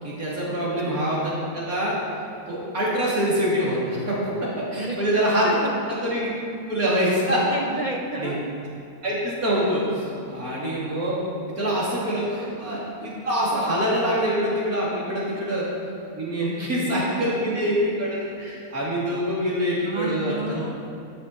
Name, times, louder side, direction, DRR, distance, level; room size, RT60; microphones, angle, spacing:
voice 1, 0.0-2.0 2.5-5.6 5.9-6.3 6.7-7.4 8.1-8.3 9.0-11.2 11.5-15.7 16.1-20.6, equal, 70° right, -6 dB, 3.3 m, -25 dB
voice 2, 0.6-1.0 4.8-5.0 5.4-5.8 7.5-8.4 12.0-12.1 12.4-12.6 16.6-16.7 17.1-17.8 19.8-20.7, right 2 dB, 45° right, 1 dB, 0.6 m, -32 dB
12.0 x 7.3 x 5.7 m, 2.7 s
omnidirectional pair, 1.6 m